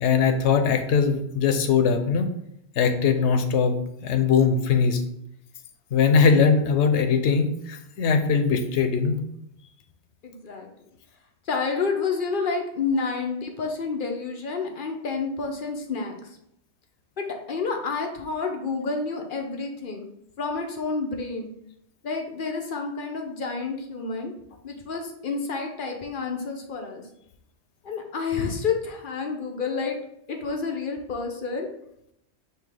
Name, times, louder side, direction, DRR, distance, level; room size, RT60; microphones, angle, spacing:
voice 1, 0.0-2.3 2.8-3.8 4.0-5.0 5.9-9.3, left 6 dB, 85° left, 7 dB, 0.9 m, -21 dB
voice 2, 10.2-10.7 11.5-16.2 17.2-20.1 20.4-21.5 22.0-24.3 24.6-27.0 27.8-30.0 30.3-31.7, left 4 dB, 55° left, 2 dB, 0.7 m, -29 dB
5.7 x 2.8 x 3.3 m, 0.78 s
omnidirectional pair, 1.1 m